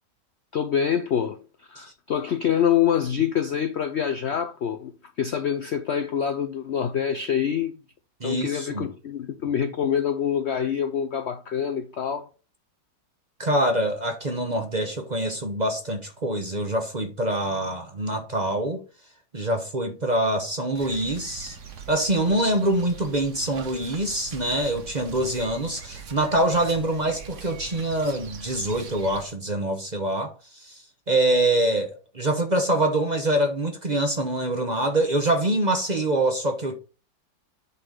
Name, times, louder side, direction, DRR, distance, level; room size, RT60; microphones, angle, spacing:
voice 1, 0.5-1.4 1.7-4.9 5.2-7.7 8.2-12.3, left 8 dB, 80° left, 0.6 m, -25 dB
voice 2, 8.2-8.9 13.4-18.8 19.3-21.6 21.9-36.8, right 1 dB, 30° right, 0.8 m, -25 dB
sound 1, 20.7-29.3, right 6 dB, 50° right, 1.3 m, -42 dB
8.2 x 3.9 x 6.4 m
omnidirectional pair, 1.9 m